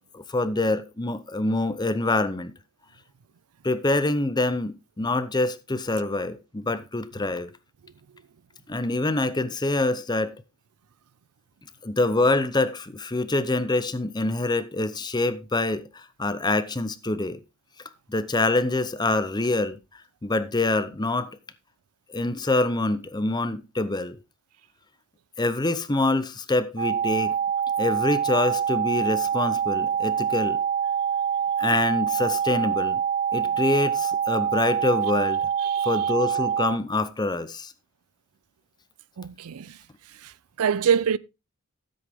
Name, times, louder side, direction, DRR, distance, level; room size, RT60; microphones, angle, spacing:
voice 1, 0.1-2.5 3.6-7.5 8.7-10.3 11.8-17.4 18.1-21.3 22.1-24.2 25.4-27.4 27.8-30.6 31.6-33.0 33.3-35.5 35.8-37.7, left 2 dB, 20° left, 0.7 m, -25 dB
sound 1, 26.8-36.8, right 8 dB, 40° right, 0.7 m, -25 dB
voice 2, 35.6-36.1 39.2-39.8 40.1-41.2, right 7 dB, 80° right, 0.5 m, -26 dB
13.5 x 7.8 x 3.5 m
head